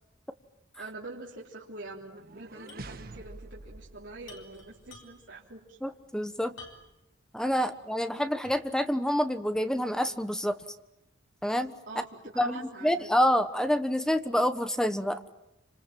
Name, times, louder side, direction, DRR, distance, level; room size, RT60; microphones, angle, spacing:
voice 1, 0.8-5.8 11.9-13.2, right 2 dB, 75° right, -4 dB, 3.5 m, -44 dB
sound 1, 1.9-5.1, right 2 dB, 50° right, 1.3 m, -47 dB
sound 2, 2.7-2.9 3.2-3.3 4.2-5.4 6.6-7.1 7.6-7.7 8.4-8.8, left 3 dB, 90° left, 5.7 m, -50 dB
voice 2, 5.8-6.5 7.3-10.5 11.4-11.7 12.4-15.2, equal, 5° left, 9 dB, 1.2 m, -27 dB
28.5 x 26.5 x 7.5 m, 0.89 s
head